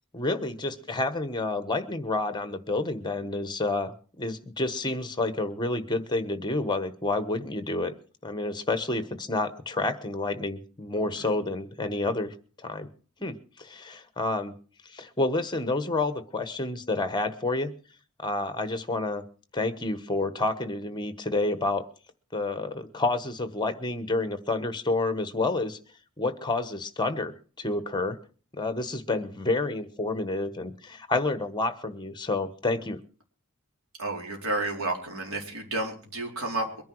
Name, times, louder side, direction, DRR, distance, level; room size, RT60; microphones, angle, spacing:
voice 1, 0.1-7.9 8.2-12.3 12.6-12.9 13.2-14.5 14.8-17.7 18.2-19.2 19.5-21.8 22.3-25.8 26.2-28.2 28.5-33.0, left 2 dB, 20° left, 11 dB, 1.2 m, -29 dB
voice 2, 34.0-36.8, right 2 dB, 70° right, 1 dB, 4.1 m, -31 dB
22.5 x 10.5 x 4.7 m, 0.40 s
head